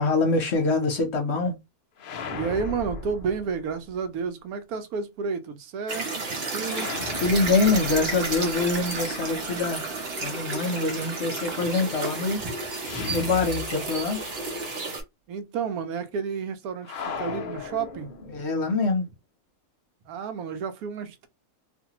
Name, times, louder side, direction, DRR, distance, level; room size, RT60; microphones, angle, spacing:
voice 1, 0.0-1.5 7.2-9.8 10.2-12.4 13.1-14.2 18.3-19.1, left 3 dB, 55° left, 0.9 m, -24 dB
sound 1, 2.0-4.0 6.6-9.6 12.8-14.2 14.5-14.6 16.8-18.6, left 4 dB, 85° left, 0.4 m, -37 dB
voice 2, 2.3-6.9 15.3-18.1 20.1-21.3, right 5 dB, 85° right, 1.1 m, -31 dB
sound 2, 5.9-15.0, right 3 dB, 50° right, 0.9 m, -32 dB
2.5 x 2.5 x 2.8 m
omnidirectional pair, 1.5 m